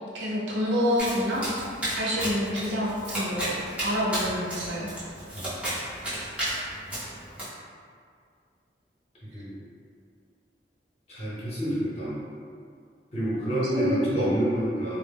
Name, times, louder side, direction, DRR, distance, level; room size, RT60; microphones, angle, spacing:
voice 1, 0.1-1.5 2.0-3.5 3.8-4.9 13.7-14.4, equal, 80° right, -5 dB, 0.6 m, -27 dB
Domestic sounds home sounds, 1.0-7.4, right 1 dB, 10° right, 0.7 m, -33 dB
voice 2, 11.1-12.2 13.1-15.0, right 1 dB, 35° left, -9 dB, 0.8 m, -28 dB
2.0 x 2.0 x 3.3 m, 2.2 s
head